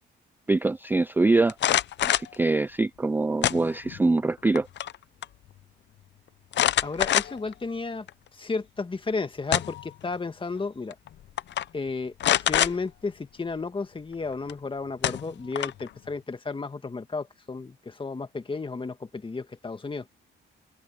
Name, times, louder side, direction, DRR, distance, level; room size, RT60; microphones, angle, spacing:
voice 1, 0.5-1.6 2.0-4.7, right 3 dB, 10° right, 0.4 m, -24 dB
sound 1, 1.5-2.3 3.4-4.0 4.4-5.0 5.2-5.3 6.5-7.5 8.1-8.2 9.2-9.9 10.9-11.1 11.4-11.6 12.2-12.7 14.5-14.6 15.0-15.9, left 12 dB, 65° left, 0.7 m, -25 dB
voice 2, 6.8-8.1 8.3-11.0 11.7-12.1 12.4-20.1, left 4 dB, 25° left, 1.9 m, -33 dB
cardioid pair, 90°, 20 cm